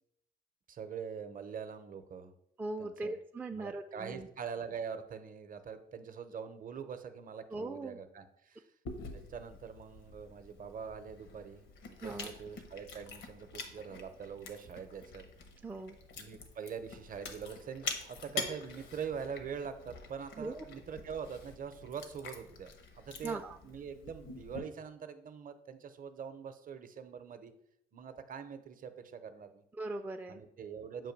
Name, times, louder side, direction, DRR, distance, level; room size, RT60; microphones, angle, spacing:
voice 1, 0.7-2.3 2.8-3.1 3.5-8.7 9.1-15.3 16.2-27.5 27.9-29.6 30.3-31.1, right 7 dB, 45° right, 9 dB, 0.7 m, -44 dB
voice 2, 2.6-4.3 7.5-8.0 12.0-12.3 15.6-16.0 20.4-20.6 23.2-23.6 29.8-30.4, right 2 dB, 10° right, 5 dB, 0.3 m, -40 dB
Chewing mastication, 8.9-24.6, left 4 dB, 80° left, 0.9 m, -46 dB
7.5 x 2.6 x 5.2 m, 0.77 s
cardioid pair, 90°, 20 cm